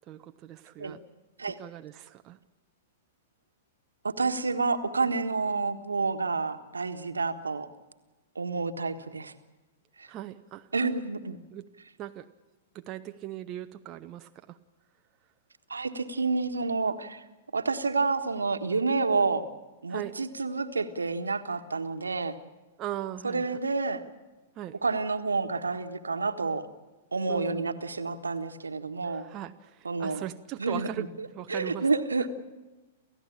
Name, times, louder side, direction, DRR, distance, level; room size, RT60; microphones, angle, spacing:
voice 1, 0.1-1.0 1.6-2.4 10.1-10.7 11.5-11.7 12.0-12.3 12.7-14.6 19.9-20.2 22.8-23.4 24.6-24.8 27.3-27.8 29.0-31.0 31.3-31.9, right 12 dB, 30° right, 7 dB, 0.8 m, -39 dB
voice 2, 4.0-7.7 8.3-9.3 10.0-10.1 10.7-11.4 15.7-17.2 17.5-19.5 19.8-22.4 23.2-24.0 24.8-26.7 27.1-29.3 29.8-30.2 30.6-32.3, right 4 dB, 75° right, 8 dB, 1.5 m, -29 dB
29.0 x 15.0 x 8.7 m, 1.2 s
figure-of-eight pair, 105°, 0 cm